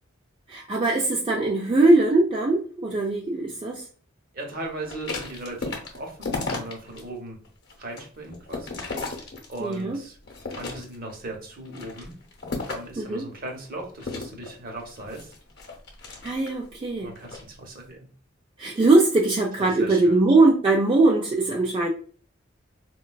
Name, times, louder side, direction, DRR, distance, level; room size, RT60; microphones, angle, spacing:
voice 1, 0.5-3.9 9.6-10.0 13.0-13.3 16.2-17.1 18.6-21.9, right 2 dB, 25° right, -1 dB, 0.3 m, -21 dB
voice 2, 4.3-7.4 7.8-8.8 9.5-10.2 10.5-12.1 12.7-15.3 17.0-18.0 19.6-20.2, right 2 dB, 45° right, 2 dB, 0.8 m, -38 dB
sound 1, 4.8-7.0 7.4-9.8 10.3-11.1 11.6-13.0 14.0-16.7 17.1-17.5, left 3 dB, 55° left, 0.7 m, -34 dB
4.0 x 2.2 x 2.2 m, 0.42 s
head